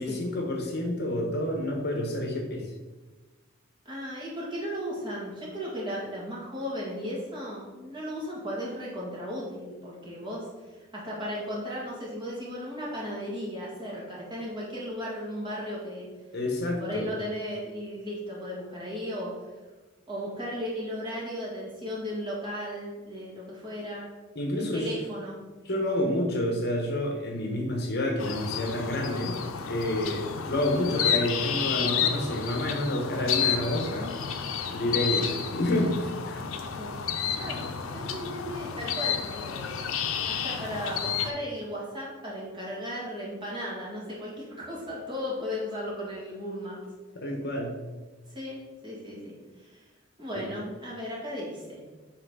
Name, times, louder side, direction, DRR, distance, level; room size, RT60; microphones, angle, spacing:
voice 1, 0.0-2.7 16.3-17.1 24.3-24.9 25.6-29.4 29.7-34.2 34.7-36.4 47.2-47.8 50.3-50.4, left 1 dB, 50° left, 1 dB, 1.0 m, -29 dB
voice 2, 3.9-16.1 16.8-19.3 20.1-24.1 24.5-25.4 36.8-36.9 37.4-39.7 40.2-46.8 48.3-49.9 50.2-51.8, equal, 25° right, -5 dB, 1.8 m, -36 dB
sound 1, 28.2-41.3, left 7 dB, 85° left, 0.5 m, -31 dB
5.7 x 3.3 x 5.5 m, 1.2 s
head